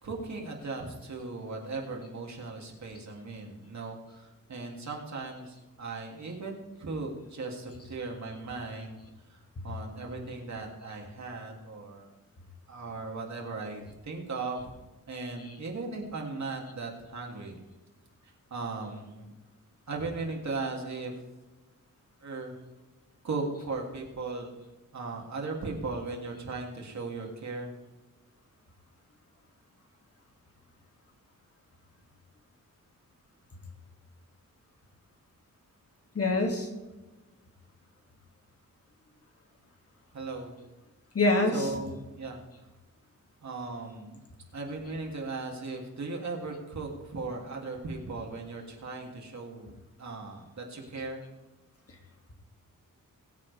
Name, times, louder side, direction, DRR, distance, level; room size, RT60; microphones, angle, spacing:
voice 1, 0.0-9.0 9.3-9.4 9.6-12.1 12.7-14.7 15.1-17.6 18.2-19.3 19.9-21.2 22.2-22.5 23.2-24.5 24.9-27.7 40.1-40.5 41.5-42.4 43.4-44.2 44.5-51.2, right 3 dB, 55° right, 0 dB, 3.1 m, -37 dB
voice 2, 36.1-36.7 41.1-41.7, left 2 dB, 45° left, 2 dB, 2.6 m, -25 dB
22.0 x 8.3 x 3.6 m, 1.1 s
wide cardioid pair, 135°, 33 cm